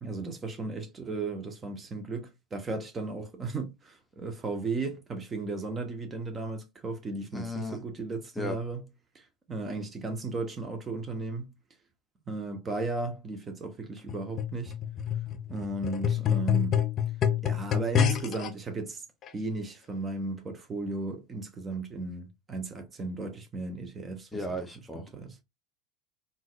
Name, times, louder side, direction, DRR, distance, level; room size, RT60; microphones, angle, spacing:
voice 1, 0.0-8.8 9.1-11.5 12.3-14.8 15.5-16.8 17.4-19.0 19.3-25.3, right 3 dB, 25° right, 0.9 m, -35 dB
voice 2, 7.3-7.8 8.4-8.6 24.3-25.0, left 1 dB, 10° left, 0.8 m, -35 dB
sound 1, 14.1-18.5 19.3-19.4, left 9 dB, 40° left, 0.4 m, -28 dB
3.8 x 2.5 x 2.4 m
figure-of-eight pair, 75°, 0 cm